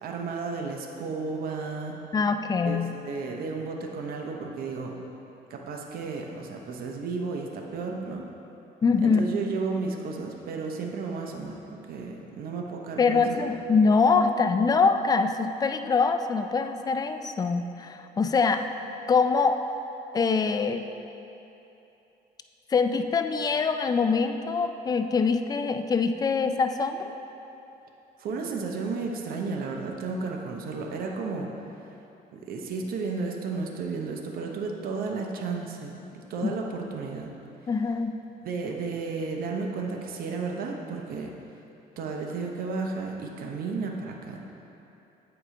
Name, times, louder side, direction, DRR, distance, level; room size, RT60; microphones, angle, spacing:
voice 1, 0.0-2.0 2.6-5.0 5.5-8.3 9.0-11.6 11.9-13.5 28.2-31.5 32.3-37.3 38.4-41.3 42.0-44.5, right 4 dB, 60° right, 1 dB, 0.7 m, -33 dB
voice 2, 2.1-2.9 8.8-9.3 13.0-18.7 19.1-19.6 20.1-20.8 22.7-27.1 36.4-36.5 37.7-38.1, left 4 dB, 25° left, 8 dB, 0.3 m, -24 dB
8.0 x 4.8 x 3.7 m, 2.9 s
cardioid pair, 110°, 17 cm